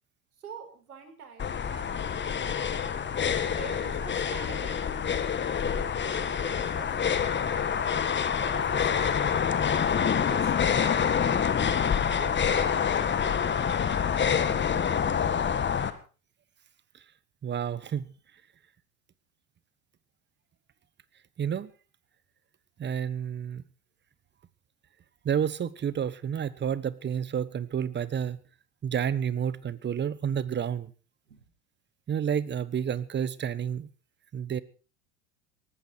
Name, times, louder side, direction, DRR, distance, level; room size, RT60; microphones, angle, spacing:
voice 1, 0.4-2.7 3.4-5.1 5.6-8.0 8.4-9.6 10.0-11.4 12.1-14.9 31.3-31.5, right 5 dB, 85° right, 4 dB, 5.2 m, -46 dB
sound 1, 1.4-15.9, left 7 dB, 25° left, 1.9 m, -27 dB
voice 2, 17.4-18.1 21.4-21.7 22.8-23.6 25.2-28.4 28.8-30.9 32.1-33.9 34.3-34.6, right 8 dB, 25° right, 18 dB, 1.2 m, -30 dB
18.5 x 15.0 x 4.6 m, 0.36 s
hypercardioid pair, 85°, 44 cm